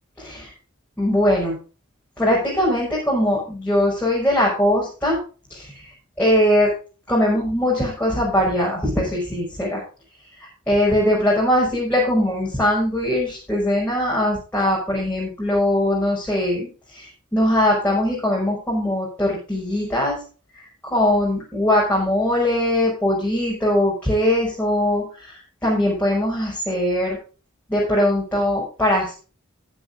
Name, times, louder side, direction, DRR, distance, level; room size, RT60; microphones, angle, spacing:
voice 1, 0.2-0.5 1.0-1.6 2.2-5.2 5.5-5.7 6.2-6.7 7.1-9.8 10.4-20.2 20.8-25.3 25.6-27.2 27.7-29.2, left 1 dB, 10° left, -5 dB, 5.4 m, -21 dB
19.5 x 7.6 x 2.6 m, 0.35 s
head